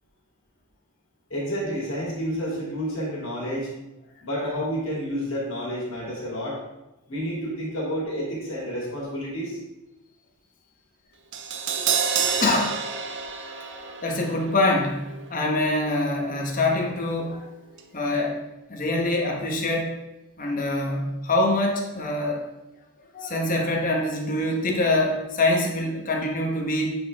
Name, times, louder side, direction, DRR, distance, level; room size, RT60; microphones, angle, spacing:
voice 1, 1.3-3.7 4.2-6.6 7.1-9.6 11.8-11.9 12.2-12.3, equal, 65° left, -5 dB, 2.8 m, -30 dB
Crash cymbal, 11.3-17.5 17.8-17.9, right 6 dB, 55° right, 0.6 m, -31 dB
voice 2, 12.4-12.8 13.5-17.5 17.9-18.4 18.7-20.0 20.4-22.4 23.1-26.9, left 2 dB, 40° left, 0 dB, 1.2 m, -25 dB
8.5 x 5.0 x 3.5 m, 0.96 s
head